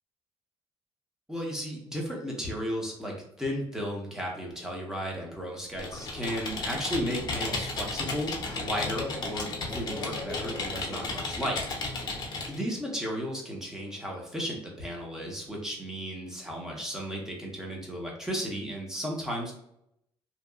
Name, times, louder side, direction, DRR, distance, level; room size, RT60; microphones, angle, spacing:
voice 1, 1.3-11.6 12.5-19.5, equal, 5° right, -1 dB, 0.7 m, -34 dB
Computer keyboard, 5.7-12.6, left 3 dB, 45° left, 0.7 m, -34 dB
2.8 x 2.3 x 2.3 m, 0.77 s
cardioid pair, 135°, 10 cm